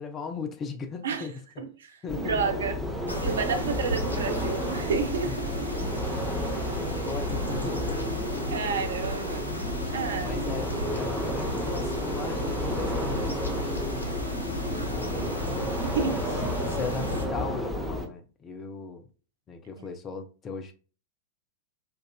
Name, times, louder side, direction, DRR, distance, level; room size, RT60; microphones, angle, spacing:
voice 1, 0.0-1.6 2.0-2.5 5.8-6.0 6.7-8.3 8.7-8.8 10.2-15.3 16.0-19.1 19.5-20.7, left 5 dB, 25° left, 0.6 m, -38 dB
voice 2, 1.6-2.8 3.2-5.5 8.5-9.5 9.9-10.4 14.7-14.9 15.8-16.2 19.8-19.9, right 6 dB, 65° right, 0.6 m, -30 dB
sound 1, 2.1-18.1, left 1 dB, 10° right, 0.7 m, -31 dB
sound 2, 3.1-17.3, right 1 dB, 85° left, 0.5 m, -35 dB
4.6 x 2.5 x 2.2 m
figure-of-eight pair, 90°, 0 cm